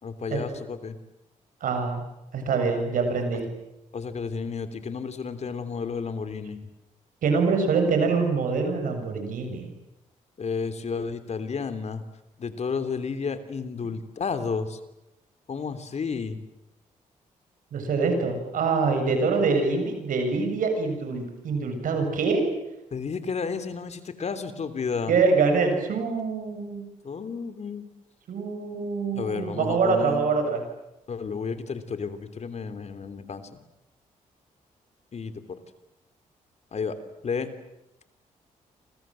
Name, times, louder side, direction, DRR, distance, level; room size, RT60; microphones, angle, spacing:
voice 1, 0.0-1.0 3.9-6.6 10.4-12.0 12.4-14.8 15.5-16.4 22.9-25.1 27.0-27.9 29.1-30.3 31.1-33.6 35.1-35.6 36.7-37.0 37.2-37.5, left 5 dB, 55° left, 10 dB, 3.2 m, -32 dB
voice 2, 1.6-2.0 2.3-3.5 7.2-9.7 17.7-22.4 25.1-26.8 28.3-30.6, right 4 dB, 75° right, 5 dB, 7.3 m, -25 dB
29.0 x 26.0 x 7.7 m, 0.91 s
cardioid pair, 65°, 14 cm